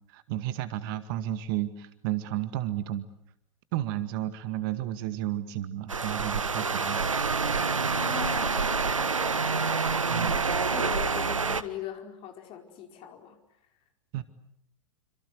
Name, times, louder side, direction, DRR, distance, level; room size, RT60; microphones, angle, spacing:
voice 1, 0.1-3.1 3.7-7.0 10.1-10.4 14.1-14.2, right 13 dB, 45° right, 12 dB, 1.9 m, -32 dB
sound 1, 5.9-11.6, right 4 dB, 80° right, 1.4 m, -27 dB
voice 2, 7.9-9.7 10.3-13.4, left 10 dB, 35° left, 5 dB, 4.9 m, -40 dB
28.0 x 26.0 x 8.0 m, 0.77 s
figure-of-eight pair, 100°, 16 cm